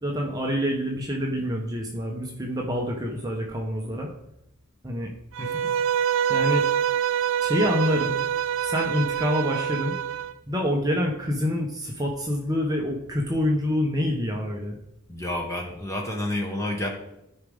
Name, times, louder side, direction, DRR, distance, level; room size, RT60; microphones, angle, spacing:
voice 1, 0.0-4.1 4.8-5.1 6.3-6.7 7.4-8.1 8.6-10.0 10.5-14.8, equal, 15° right, 0 dB, 0.8 m, -26 dB
Bowed string instrument, 5.3-10.3, right 9 dB, 70° right, 0.4 m, -25 dB
voice 2, 5.4-5.7 15.1-16.9, left 1 dB, 15° left, 1 dB, 1.2 m, -30 dB
13.0 x 5.0 x 3.5 m, 0.83 s
head